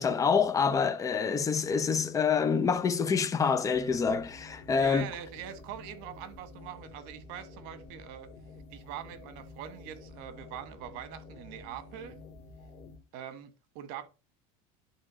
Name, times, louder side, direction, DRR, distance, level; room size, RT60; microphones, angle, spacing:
voice 1, 0.0-5.1, left 6 dB, 20° left, 0.9 m, -27 dB
sound 1, 3.7-13.0, left 3 dB, 40° left, 2.3 m, -50 dB
voice 2, 4.8-8.3 8.7-12.2 13.1-14.1, right 10 dB, 60° right, 1.5 m, -43 dB
10.0 x 3.5 x 6.3 m
supercardioid pair, 145°, 18 cm